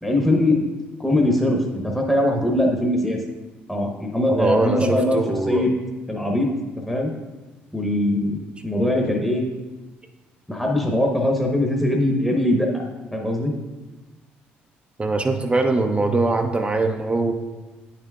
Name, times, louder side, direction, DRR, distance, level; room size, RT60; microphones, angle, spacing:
voice 1, 0.0-0.7 1.0-3.2 3.7-5.2 5.5-5.7 6.1-6.5 6.9-7.1 7.7-8.4 8.6-9.4 10.5-12.8 13.1-13.5, left 1 dB, 5° left, 0 dB, 1.0 m, -21 dB
voice 2, 4.3-5.6 15.0-17.3, right 3 dB, 25° right, 4 dB, 0.6 m, -22 dB
8.7 x 5.7 x 2.4 m, 1.2 s
supercardioid pair, 60°, 5 cm